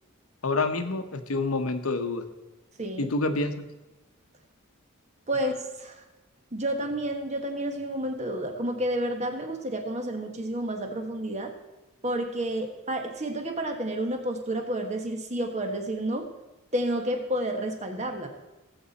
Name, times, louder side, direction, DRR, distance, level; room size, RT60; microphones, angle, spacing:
voice 1, 0.4-2.2 3.0-3.7, left 3 dB, 90° left, 8 dB, 1.1 m, -27 dB
voice 2, 2.8-3.1 5.3-6.0 6.5-11.5 12.0-16.3 16.7-18.3, right 1 dB, 30° right, 5 dB, 1.5 m, -30 dB
18.5 x 8.2 x 4.2 m, 1.1 s
head